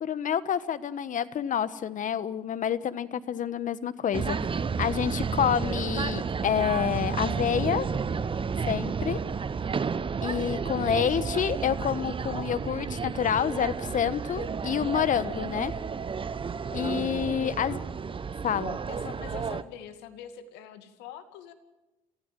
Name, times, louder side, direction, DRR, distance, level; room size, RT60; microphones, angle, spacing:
voice 1, 0.0-4.4 4.8-7.9 8.7-9.2 10.2-15.7 16.7-17.8 18.4-18.8, left 8 dB, 45° left, 15 dB, 1.3 m, -28 dB
sound 1, 4.1-19.6, right 5 dB, 30° right, 1.0 m, -31 dB
voice 2, 18.9-21.5, left 9 dB, 75° left, 9 dB, 2.3 m, -44 dB
27.0 x 15.0 x 7.6 m, 1.1 s
hypercardioid pair, 65°, 18 cm